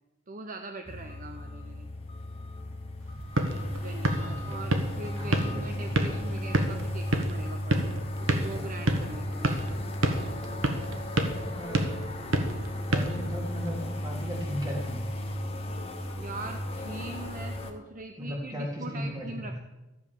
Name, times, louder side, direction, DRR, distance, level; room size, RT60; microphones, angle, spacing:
voice 1, 0.3-1.9 3.7-7.8 8.2-9.7 10.2-10.8 16.1-19.6, right 2 dB, 40° right, 5 dB, 0.8 m, -42 dB
sound 1, 0.9-17.7, left 1 dB, 30° left, 1.5 m, -35 dB
sound 2, 3.0-13.8, right 1 dB, 65° right, 1.5 m, -31 dB
voice 2, 4.2-4.6 5.2-5.8 11.5-11.8 12.9-15.0 18.2-19.6, equal, 20° right, -2 dB, 3.5 m, -36 dB
14.0 x 8.1 x 7.1 m, 1.1 s
head